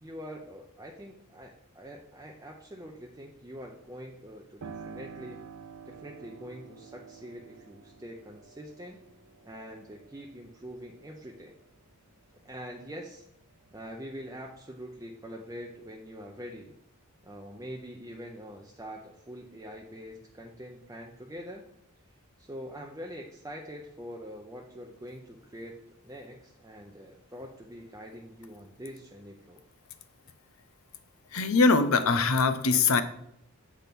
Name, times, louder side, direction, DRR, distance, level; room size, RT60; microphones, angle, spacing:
voice 1, 0.0-5.4 5.9-9.0 9.4-11.6 12.4-13.2 13.7-16.7 17.2-21.6 22.4-29.6, equal, 15° right, 0 dB, 0.6 m, -44 dB
Piano, 4.6-13.0 13.5-14.5, right 5 dB, 80° right, 0.7 m, -50 dB
voice 2, 31.3-33.0, left 4 dB, 70° left, 11 dB, 0.7 m, -22 dB
8.2 x 3.6 x 5.9 m, 0.75 s
head